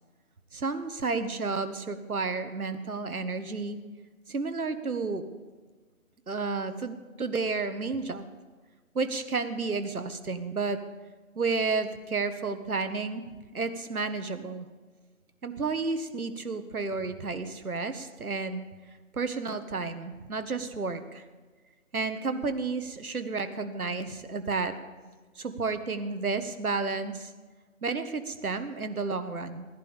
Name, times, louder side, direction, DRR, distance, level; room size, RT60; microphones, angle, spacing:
voice 1, 0.5-3.8 4.3-5.3 6.3-8.3 8.9-10.8 11.3-13.2 13.5-14.7 15.4-18.6 19.1-21.2 21.9-24.7 25.3-27.3 27.8-29.7, right 4 dB, 90° right, 9 dB, 1.5 m, -31 dB
16.5 x 11.0 x 5.1 m, 1.4 s
figure-of-eight pair, 160°, 42 cm